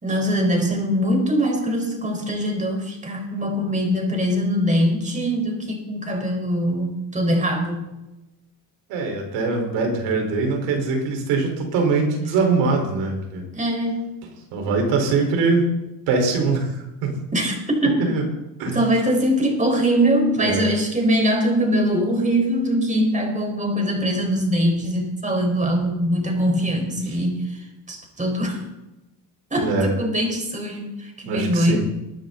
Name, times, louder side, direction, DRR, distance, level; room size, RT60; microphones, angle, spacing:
voice 1, 0.0-7.9 13.5-14.1 17.3-18.1 18.7-28.6 29.5-31.8, equal, 15° right, 2 dB, 4.5 m, -22 dB
voice 2, 8.9-13.4 14.5-15.7 16.1-17.2 18.0-18.2 18.6-18.8 20.4-20.7 29.6-29.9 31.2-31.8, right 4 dB, 75° right, 2 dB, 4.4 m, -22 dB
21.5 x 10.0 x 3.9 m, 0.97 s
supercardioid pair, 95°, 44 cm